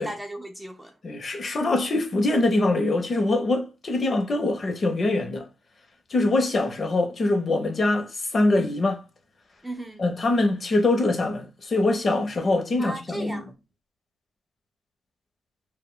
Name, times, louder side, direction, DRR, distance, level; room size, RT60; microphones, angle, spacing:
voice 1, 0.0-0.9 9.6-10.0 12.8-13.5, right 1 dB, 5° right, 0.3 m, -36 dB
voice 2, 1.0-5.4 6.1-9.0 10.0-13.4, left 2 dB, 40° left, 0.6 m, -23 dB
2.1 x 2.1 x 3.6 m
cardioid pair, 95°, 0 cm